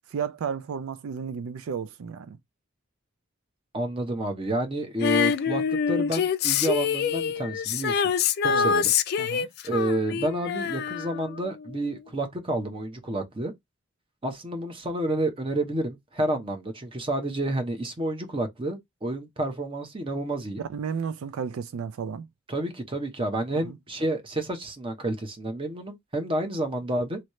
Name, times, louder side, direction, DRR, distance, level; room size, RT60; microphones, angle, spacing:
voice 1, 0.1-2.4 8.4-8.7 9.2-9.5 20.7-22.3 23.6-23.8, right 6 dB, 85° right, 0.4 m, -33 dB
voice 2, 3.7-8.0 8.4-8.9 9.6-13.5 14.2-20.6 22.5-27.2, right 1 dB, 25° right, 0.8 m, -30 dB
Female singing, 5.0-11.6 11.9-12.0, left 7 dB, 50° left, 0.3 m, -26 dB
3.1 x 2.7 x 3.0 m
head